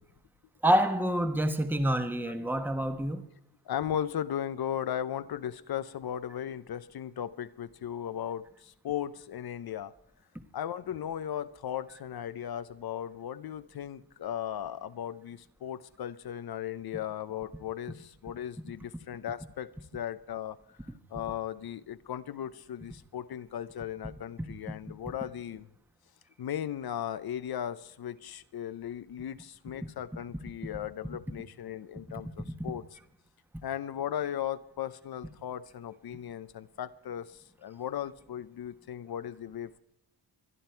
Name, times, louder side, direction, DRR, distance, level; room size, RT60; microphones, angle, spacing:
voice 1, 0.6-3.2, right 1 dB, 5° right, 1.3 m, -27 dB
voice 2, 3.7-9.9 10.5-20.6 21.1-25.7 26.4-32.9 33.6-39.8, left 10 dB, 60° left, 0.8 m, -37 dB
25.5 x 10.0 x 4.5 m
cardioid pair, 95°, 41 cm